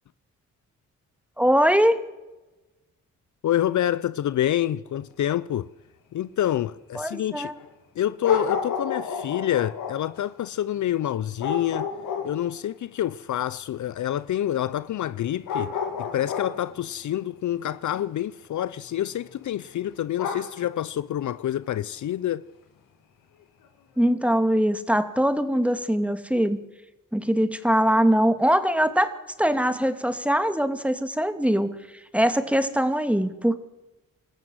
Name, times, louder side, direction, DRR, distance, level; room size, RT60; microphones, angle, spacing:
voice 1, 1.4-2.0 7.0-7.5 24.0-26.6 27.1-29.1 29.4-31.7 32.1-33.6, equal, 5° right, 2.6 m, -22 dB
voice 2, 3.4-5.7 6.1-7.5 7.9-11.9 12.2-22.5, left 12 dB, 60° left, 0.7 m, -27 dB
sound 1, 5.1-5.2 7.6-7.7 8.2-10.2 11.4-12.6 14.7-14.8 15.5-16.8 18.8-19.3 20.2-20.7 21.6-21.8, left 6 dB, 80° left, 2.7 m, -30 dB
26.5 x 14.0 x 7.9 m
supercardioid pair, 50°, 33 cm